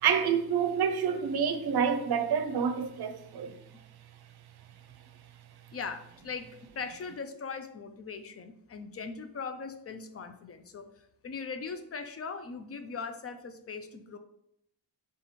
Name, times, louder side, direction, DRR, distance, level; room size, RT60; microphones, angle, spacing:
voice 1, 0.0-3.5, right 7 dB, 65° right, 0.6 m, -28 dB
voice 2, 5.7-14.2, left 5 dB, 35° left, 0.4 m, -40 dB
3.6 x 3.0 x 4.1 m
wide cardioid pair, 120°, 41 cm